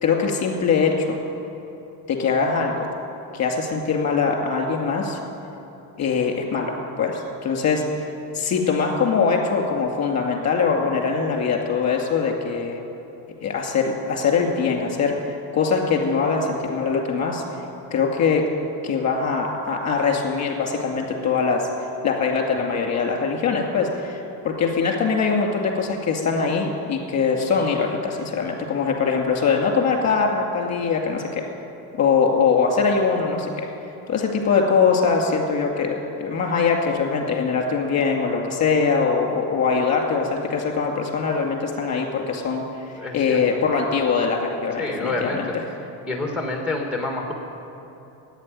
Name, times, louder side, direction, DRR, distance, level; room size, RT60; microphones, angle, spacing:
voice 1, 0.0-1.2 2.1-2.9 3.3-5.2 6.0-7.8 8.3-12.8 13.4-17.4 17.9-18.4 18.8-21.7 22.0-31.4 32.0-33.7 34.1-42.6 42.9-45.6, left 5 dB, 35° left, 2 dB, 2.4 m, -22 dB
voice 2, 43.0-43.4 44.8-45.5 46.1-47.3, left 2 dB, ahead, 1 dB, 1.5 m, -27 dB
11.0 x 9.0 x 10.0 m, 3.0 s
cardioid pair, 110°, 46 cm